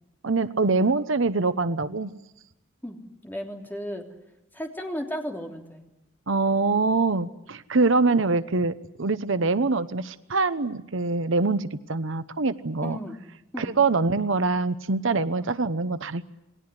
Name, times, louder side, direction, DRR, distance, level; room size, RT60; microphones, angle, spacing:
voice 1, 0.2-2.1 6.3-13.0 13.6-16.2, right 3 dB, 65° right, 13 dB, 0.9 m, -24 dB
voice 2, 2.8-4.1 4.5-5.8 12.8-13.2 13.5-13.7 15.4-15.5, equal, 10° left, 2 dB, 3.3 m, -34 dB
28.5 x 20.0 x 9.7 m, 0.92 s
head